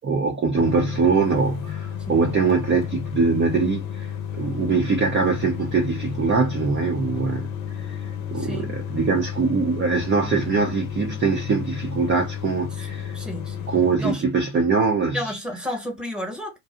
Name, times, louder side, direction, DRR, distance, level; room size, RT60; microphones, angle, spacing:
voice 1, 0.0-7.5 7.8-13.2 13.7-15.4, right 4 dB, 25° right, 0.6 m, -23 dB
sound 1, 0.5-14.0, left 9 dB, 50° left, 0.8 m, -32 dB
voice 2, 8.3-8.8 12.8-13.7 14.0-14.2 15.1-16.6, left 1 dB, ahead, 1.1 m, -32 dB
2.7 x 2.3 x 2.4 m
supercardioid pair, 100°, 47 cm